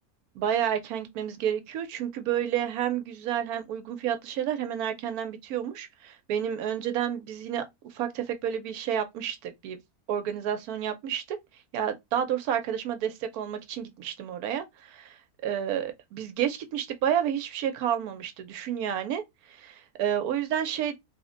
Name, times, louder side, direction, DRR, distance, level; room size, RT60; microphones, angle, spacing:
voice 1, 0.3-9.8 10.1-11.4 11.7-20.9, right 9 dB, 85° right, 1.1 m, -30 dB
3.1 x 2.1 x 3.6 m
omnidirectional pair, 1.6 m